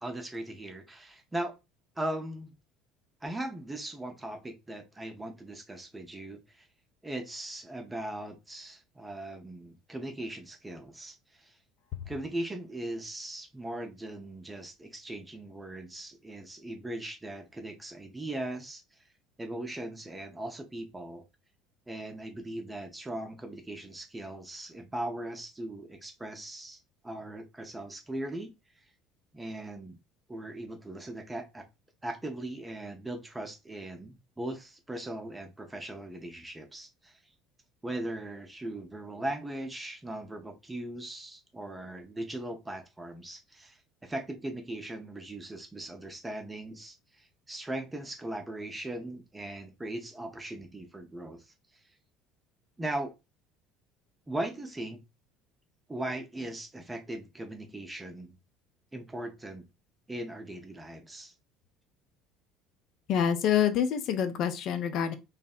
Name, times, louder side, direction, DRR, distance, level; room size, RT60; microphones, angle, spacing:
voice 1, 0.0-1.5 2.0-2.5 3.2-6.7 7.0-11.5 12.1-18.8 19.4-21.2 21.9-26.8 27.0-28.5 29.3-30.0 30.3-31.6 32.0-37.1 37.8-51.4 52.8-53.1 54.3-55.0 55.9-58.4 58.9-59.6 60.1-61.3, right 1 dB, 15° right, 0.6 m, -39 dB
voice 2, 63.1-65.1, left 8 dB, 50° left, 0.4 m, -26 dB
2.7 x 2.0 x 2.3 m
figure-of-eight pair, 60°, 0 cm